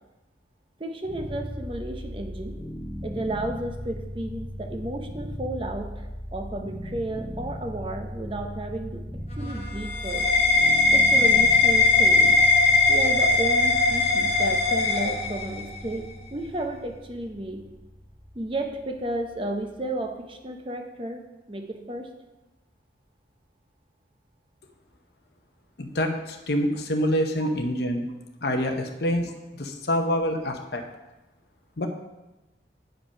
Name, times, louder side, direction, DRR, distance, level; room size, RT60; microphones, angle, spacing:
voice 1, 0.8-2.6 3.0-9.0 9.4-10.3 10.9-12.4 12.9-16.0 16.3-17.6 18.3-21.2 21.5-22.1 27.4-27.5, right 1 dB, 30° right, 4 dB, 0.7 m, -33 dB
sound 1, 1.0-20.1, equal, 10° left, 0.7 m, -38 dB
sound 2, 9.3-15.8, left 3 dB, 35° left, 1.1 m, -20 dB
voice 2, 25.8-28.1 28.4-29.3 29.6-30.8 31.8-31.9, equal, 60° left, 4 dB, 0.8 m, -26 dB
8.8 x 5.2 x 5.5 m, 1.0 s
head